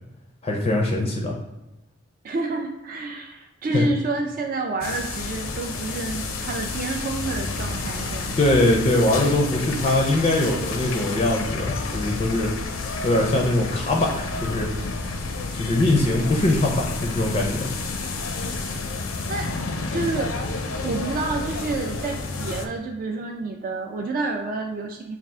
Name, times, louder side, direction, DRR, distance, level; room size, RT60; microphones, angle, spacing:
voice 1, 0.4-1.4 3.7-3.8 8.4-12.5 13.0-14.7 15.5-17.7, left 1 dB, 30° left, 0 dB, 0.4 m, -22 dB
voice 2, 2.2-8.4 19.3-19.5 19.9-20.3 20.8-25.2, right 3 dB, 45° right, 2 dB, 0.3 m, -29 dB
sound 1, 4.8-22.7, left 3 dB, 80° left, 0.5 m, -30 dB
4.3 x 2.4 x 3.5 m, 1.0 s
head